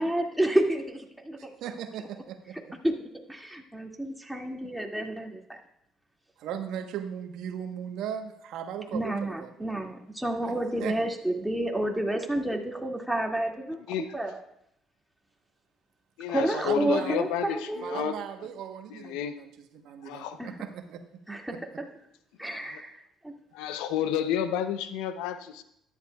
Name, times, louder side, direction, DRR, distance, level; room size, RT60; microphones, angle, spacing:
voice 1, 0.0-1.5 2.8-3.0 3.3-5.6 8.9-13.8 14.1-14.4 16.3-18.1 20.4-20.5 21.3-21.5 22.4-22.9 23.2-23.3, right 1 dB, 5° right, 0 dB, 2.2 m, -30 dB
voice 2, 1.6-2.8 6.4-9.7 10.4-10.5 10.8-10.9 16.5-17.2 17.8-21.0 21.5-21.6, right 9 dB, 70° right, 6 dB, 1.1 m, -37 dB
voice 3, 16.2-18.1 18.9-19.3 20.0-20.4 22.7-22.8 23.5-25.6, left 9 dB, 80° left, 11 dB, 0.6 m, -31 dB
13.0 x 11.0 x 2.3 m, 0.76 s
supercardioid pair, 65°, 0 cm